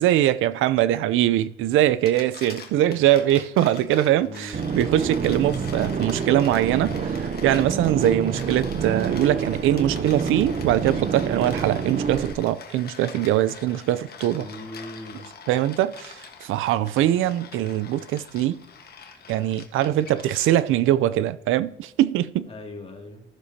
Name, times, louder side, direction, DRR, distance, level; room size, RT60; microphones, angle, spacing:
voice 1, 0.0-14.5 15.5-18.6 19.3-22.5, right 13 dB, 90° right, 0.5 m, -22 dB
sound 1, 1.9-20.9, left 6 dB, 50° left, 1.3 m, -44 dB
voice 2, 4.2-4.6 14.4-15.2 22.5-23.2, left 1 dB, 30° left, 2.3 m, -39 dB
sound 2, 4.5-12.3, right 5 dB, 40° right, 0.7 m, -28 dB
14.5 x 6.8 x 2.8 m
cardioid pair, 90°, 20 cm